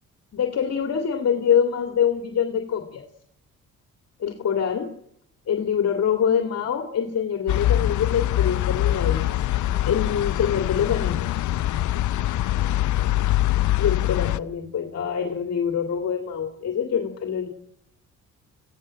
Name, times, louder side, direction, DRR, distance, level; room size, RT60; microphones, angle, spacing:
voice 1, 0.3-3.0 4.2-4.9 5.5-9.3 9.9-11.4 13.8-17.5, left 8 dB, 60° left, 3 dB, 2.2 m, -25 dB
sound 1, 7.5-14.4, left 13 dB, 75° left, 0.7 m, -23 dB
27.5 x 16.0 x 6.4 m, 0.72 s
cardioid pair, 90°, 30 cm